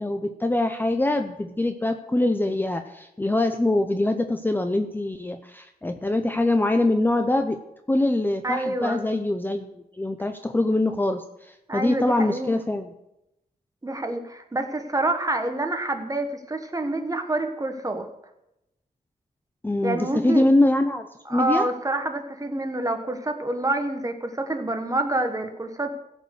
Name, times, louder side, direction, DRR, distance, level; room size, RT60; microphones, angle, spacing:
voice 1, 0.0-7.6 7.9-12.9 19.6-21.7, left 2 dB, 10° left, 6 dB, 0.6 m, -24 dB
voice 2, 8.4-9.0 11.7-12.5 13.8-18.1 19.8-20.5 21.2-25.9, right 2 dB, 20° right, 6 dB, 1.3 m, -27 dB
16.0 x 5.4 x 6.5 m, 0.86 s
wide cardioid pair, 95°, 16 cm